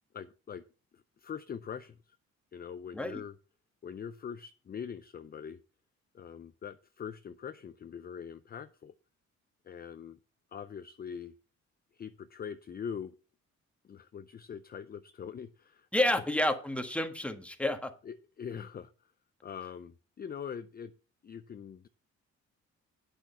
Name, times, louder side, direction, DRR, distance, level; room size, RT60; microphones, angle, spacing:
voice 1, 0.1-0.6 0.9-2.2 2.5-3.4 3.8-5.6 6.1-8.9 9.6-10.2 10.5-11.3 11.9-13.1 13.8-15.9 18.0-19.1 19.4-20.9 21.2-21.9, left 7 dB, 30° left, 0.5 m, -43 dB
voice 2, 15.9-17.9, left 1 dB, 5° left, 1.4 m, -30 dB
8.9 x 6.1 x 5.7 m
cardioid pair, 90°, 30 cm